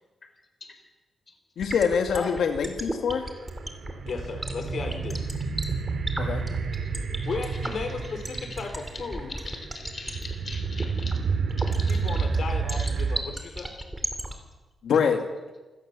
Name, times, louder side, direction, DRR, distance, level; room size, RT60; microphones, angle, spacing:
voice 1, 1.6-3.2 6.2-6.4 14.8-15.2, left 6 dB, 70° left, 4 dB, 2.2 m, -24 dB
sound 1, 1.6-14.3, right 1 dB, 10° right, 2.6 m, -33 dB
voice 2, 2.1-2.5 4.0-5.2 7.2-9.4 11.9-13.7, left 4 dB, 45° left, 5 dB, 4.4 m, -35 dB
sound 2, 3.1-13.2, right 5 dB, 55° right, 3.0 m, -30 dB
voice 3, 9.5-11.1 11.6-12.2 12.7-12.9 13.3-13.4, left 4 dB, 30° left, 6 dB, 4.0 m, -42 dB
27.0 x 17.5 x 7.0 m, 1.2 s
wide cardioid pair, 175°, 0 cm